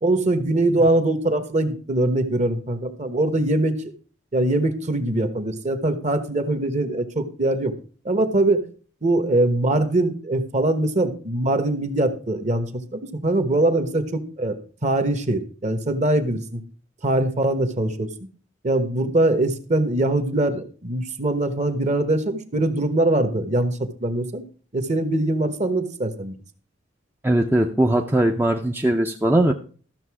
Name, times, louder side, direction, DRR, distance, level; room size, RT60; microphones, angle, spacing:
voice 1, 0.0-3.8 4.3-7.7 8.0-8.6 9.0-16.6 17.0-18.1 18.6-24.4 24.7-26.4, right 2 dB, 35° right, 10 dB, 1.2 m, -22 dB
voice 2, 27.2-29.5, right 1 dB, 10° right, 3 dB, 0.6 m, -20 dB
13.5 x 6.6 x 4.8 m, 0.40 s
head